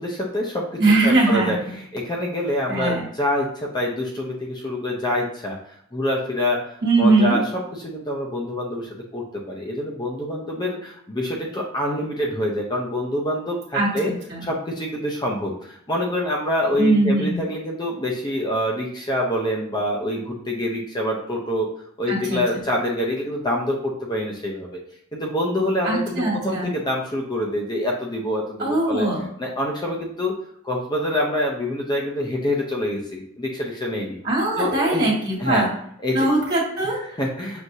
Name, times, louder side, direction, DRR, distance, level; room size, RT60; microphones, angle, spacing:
voice 1, 0.0-1.6 1.9-5.6 5.9-6.7 7.0-14.1 14.4-21.7 22.0-24.8 25.1-29.1 29.4-30.3 30.6-34.2 34.6-35.1 35.4-35.6 36.0-36.3 37.2-37.6, left 1 dB, 20° left, -2 dB, 0.5 m, -26 dB
voice 2, 0.8-1.7 2.7-3.0 6.8-7.4 13.7-14.4 16.8-17.4 22.1-22.4 25.8-26.7 28.6-29.2 34.2-35.7 36.1-37.0, right 2 dB, 45° right, -5 dB, 1.6 m, -21 dB
6.1 x 2.6 x 2.7 m, 0.69 s
head